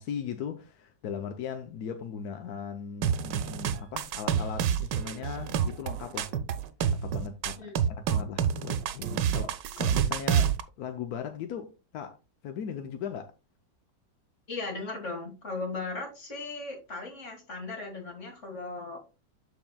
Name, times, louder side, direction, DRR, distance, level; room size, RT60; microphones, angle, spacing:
voice 1, 0.0-6.3 6.9-12.2 12.4-13.3, left 7 dB, 70° left, 1.1 m, -38 dB
sound 1, 3.0-10.6, right 8 dB, 85° right, 1.3 m, -28 dB
voice 2, 14.5-19.0, left 3 dB, 45° left, 2.1 m, -37 dB
12.5 x 4.3 x 2.2 m
omnidirectional pair, 1.8 m